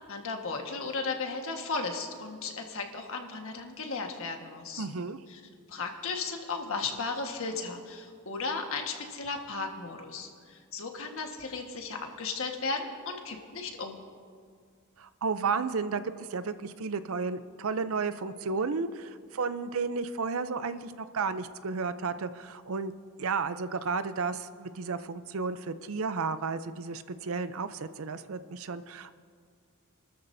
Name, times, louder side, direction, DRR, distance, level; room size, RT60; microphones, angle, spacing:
voice 1, 0.1-4.9 5.3-5.4 5.7-14.0, left 4 dB, 65° left, 3 dB, 1.5 m, -35 dB
voice 2, 4.8-5.2 15.0-16.0 16.3-22.9 23.2-29.1, right 4 dB, 65° right, 12 dB, 0.6 m, -33 dB
28.0 x 13.0 x 2.7 m, 2.1 s
head